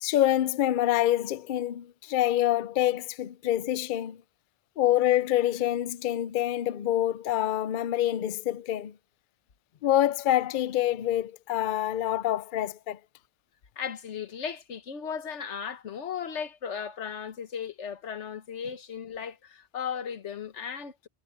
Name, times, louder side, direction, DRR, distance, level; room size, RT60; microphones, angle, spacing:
voice 1, 0.0-4.2 4.8-8.9 9.8-13.0, left 12 dB, 55° left, 0.6 m, -26 dB
voice 2, 13.8-21.1, left 7 dB, 90° left, 1.4 m, -36 dB
omnidirectional pair, 1.2 m